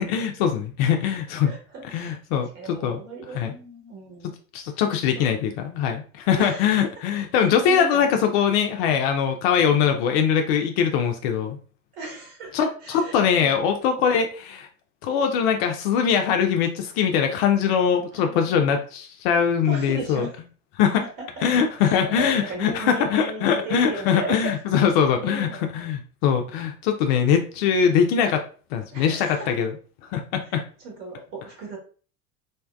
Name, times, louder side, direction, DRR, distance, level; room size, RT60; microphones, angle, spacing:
voice 1, 0.0-1.5 1.9-2.5 2.8-3.0 3.4-3.5 4.5-11.6 12.5-14.7 15.0-20.2 20.8-21.0 21.4-25.5 25.7-28.5 28.7-29.7 30.1-30.6, left 7 dB, 45° left, 5 dB, 0.4 m, -22 dB
voice 2, 1.4-4.3 5.1-5.3 6.4-7.0 7.4-8.3 9.7-10.0 11.9-13.7 18.1-18.8 19.6-20.4 21.0-21.5 21.8-25.9 28.9-29.7 30.4-31.8, right 3 dB, 50° right, 0 dB, 1.3 m, -37 dB
2.6 x 2.2 x 2.2 m, 0.39 s
figure-of-eight pair, 75°, 42 cm